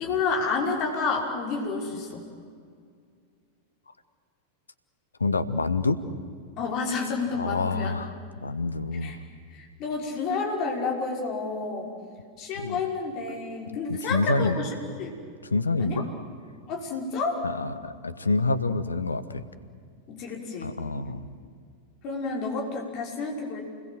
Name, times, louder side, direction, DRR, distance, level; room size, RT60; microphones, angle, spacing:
voice 1, 0.0-2.2 6.6-7.9 8.9-9.2 9.5-12.0 12.4-15.2 15.8-16.0 16.7-17.4 20.1-20.7 22.0-23.6, left 4 dB, 40° left, 0 dB, 5.8 m, -30 dB
voice 2, 5.2-6.0 7.3-8.1 8.4-9.2 12.5-12.8 13.9-14.6 15.5-16.1 17.4-19.4 20.6-21.3, left 3 dB, 75° left, 12 dB, 1.3 m, -27 dB
29.0 x 21.0 x 7.8 m, 2.2 s
figure-of-eight pair, 90°, 0 cm